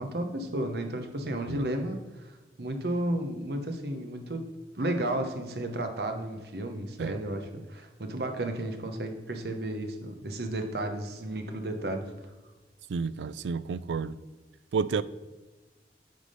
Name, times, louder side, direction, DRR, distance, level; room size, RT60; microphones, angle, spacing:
voice 1, 0.0-2.3 2.6-4.5 4.8-12.1, right 1 dB, 65° right, 1.0 m, -33 dB
voice 2, 12.9-14.2 14.7-15.0, right 5 dB, 85° right, 0.3 m, -30 dB
9.2 x 3.6 x 5.1 m
head